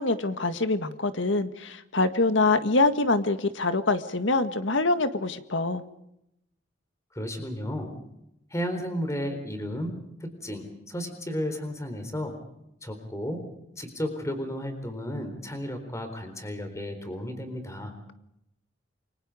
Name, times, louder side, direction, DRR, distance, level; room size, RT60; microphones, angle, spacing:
voice 1, 0.0-5.8, left 3 dB, 80° left, 9 dB, 1.9 m, -25 dB
voice 2, 7.1-7.9 8.5-12.3 12.8-13.4 13.8-17.9, equal, 15° left, 7 dB, 4.1 m, -33 dB
29.0 x 24.5 x 5.1 m, 0.81 s
head